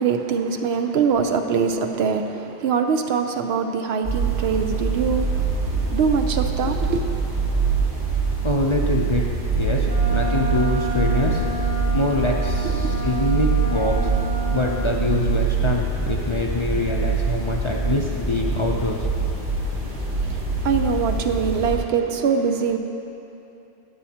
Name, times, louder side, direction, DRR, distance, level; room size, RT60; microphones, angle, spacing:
voice 1, 0.0-7.9 12.7-12.9 19.6-22.8, right 6 dB, 75° right, 0.8 m, -24 dB
sound 1, 4.0-21.8, right 4 dB, 55° right, 2.2 m, -24 dB
voice 2, 8.4-9.3 9.5-11.4 11.9-14.1 14.5-19.1, left 2 dB, 40° left, 0.5 m, -25 dB
Wind instrument woodwind instrument, 9.8-14.8, left 1 dB, 40° right, 0.9 m, -31 dB
13.0 x 8.3 x 2.8 m
omnidirectional pair, 1.1 m